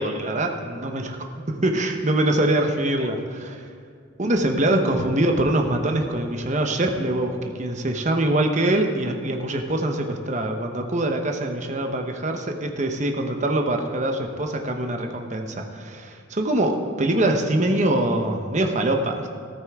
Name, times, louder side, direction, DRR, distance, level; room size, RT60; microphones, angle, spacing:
voice 1, 0.0-3.6 4.2-19.3, right 1 dB, 35° right, 4 dB, 1.0 m, -24 dB
14.0 x 13.5 x 3.6 m, 2.2 s
head